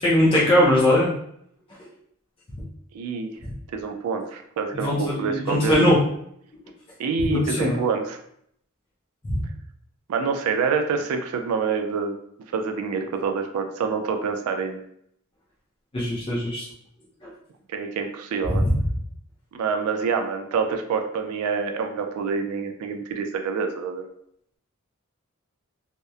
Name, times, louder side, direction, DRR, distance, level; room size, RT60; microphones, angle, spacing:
voice 1, 0.0-1.1 3.4-3.5 4.7-6.0 7.3-7.8 9.2-9.4 15.9-16.6 17.2-17.3 18.5-18.8, left 1 dB, 25° left, -7 dB, 0.5 m, -20 dB
voice 2, 2.9-3.3 3.7-5.8 7.0-8.2 10.1-12.2 12.5-14.8 17.7-18.6 19.5-24.0, right 5 dB, 90° right, 6 dB, 0.3 m, -26 dB
2.7 x 2.0 x 2.3 m, 0.70 s
head